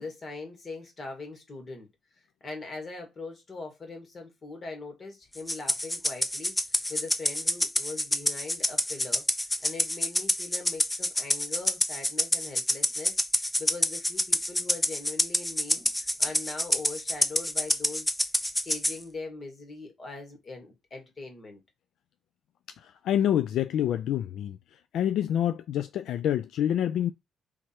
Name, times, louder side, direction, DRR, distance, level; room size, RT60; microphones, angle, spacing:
voice 1, 0.0-1.9 2.4-9.2 9.6-18.2 18.5-21.6, left 3 dB, 40° left, 1.9 m, -41 dB
Rattle (instrument), 5.5-19.0, left 1 dB, 10° left, 0.6 m, -27 dB
voice 2, 22.8-24.6 24.9-27.1, left 10 dB, 80° left, 0.3 m, -27 dB
3.6 x 3.1 x 4.3 m
cardioid pair, 90°, 0 cm